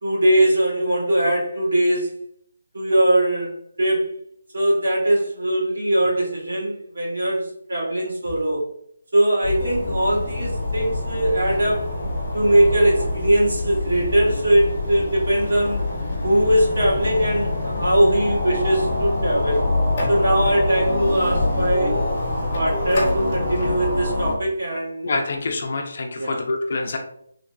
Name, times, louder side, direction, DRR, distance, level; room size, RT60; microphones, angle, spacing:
voice 1, 0.0-2.1 2.7-4.1 4.5-8.6 9.1-11.9 12.3-15.8 16.2-19.6 20.1-22.0 22.5-25.1 26.2-26.4, right 1 dB, 70° right, -4 dB, 1.1 m, -21 dB
sound 1, 9.4-24.3, left 2 dB, 25° left, 0.8 m, -25 dB
voice 2, 25.0-27.0, left 3 dB, 40° left, 3 dB, 0.4 m, -26 dB
3.2 x 2.0 x 2.4 m, 0.69 s
hypercardioid pair, 175°, 0 cm